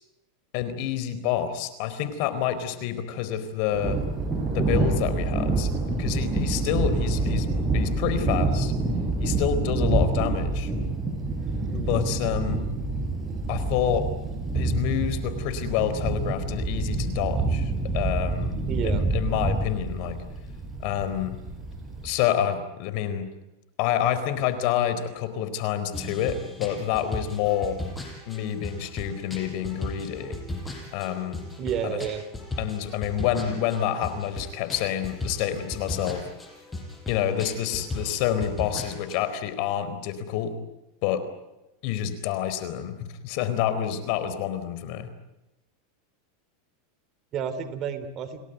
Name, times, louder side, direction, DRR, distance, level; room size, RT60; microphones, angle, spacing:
voice 1, 0.5-4.0 4.5-5.7 6.0-8.7 9.2-10.7 11.7-12.6 13.5-14.1 14.5-18.6 18.8-20.2 20.8-21.4 22.0-23.3 23.8-27.8 28.3-30.4 30.9-31.4 31.8-32.0 32.6-36.3 37.1-40.6 41.0-41.2 41.8-45.1, left 10 dB, 55° left, 12 dB, 4.2 m, -28 dB
Thunder, 3.7-22.1, right 3 dB, 15° right, 6.4 m, -27 dB
voice 2, 18.7-19.0 31.6-32.2 47.3-48.4, right 8 dB, 35° right, 10 dB, 3.3 m, -31 dB
sound 1, 25.9-39.2, left 1 dB, 10° left, 5.8 m, -37 dB
30.0 x 18.5 x 9.4 m, 0.93 s
supercardioid pair, 135°, 0 cm